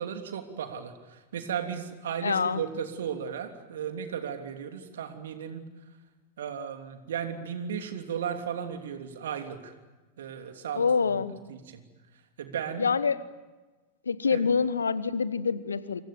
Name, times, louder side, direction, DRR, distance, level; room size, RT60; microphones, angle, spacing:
voice 1, 0.0-5.6 6.4-9.7 10.2-10.9 11.5-11.8 12.4-12.9 14.3-14.4, right 8 dB, 60° right, 6 dB, 3.1 m, -35 dB
voice 2, 2.2-2.6 10.7-11.4 12.8-13.2 14.1-16.0, left 5 dB, 75° left, 16 dB, 1.2 m, -26 dB
28.5 x 26.5 x 7.1 m, 1.2 s
figure-of-eight pair, 90°, 0 cm